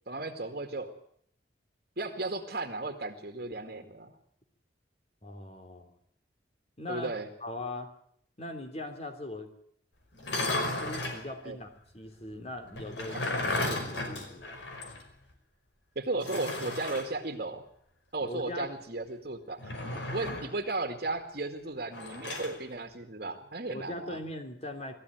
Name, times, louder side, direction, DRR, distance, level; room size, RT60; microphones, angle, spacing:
voice 1, 0.1-0.9 2.0-4.1 6.9-7.3 11.4-11.6 13.1-13.2 16.0-17.6 18.1-19.8 20.1-24.2, right 2 dB, 50° right, 3 dB, 2.1 m, -35 dB
voice 2, 5.2-5.9 6.8-7.1 7.4-7.9 8.4-9.5 10.7-11.7 11.9-14.6 18.2-18.7 19.9-20.1 23.7-24.9, left 1 dB, 35° left, 6 dB, 3.4 m, -40 dB
sound 1, 10.2-11.2 12.8-15.0 15.3-15.4 16.2-17.1 19.6-20.6 21.9-22.6, left 2 dB, 75° left, 5.2 m, -34 dB
20.5 x 14.5 x 9.5 m, 0.68 s
head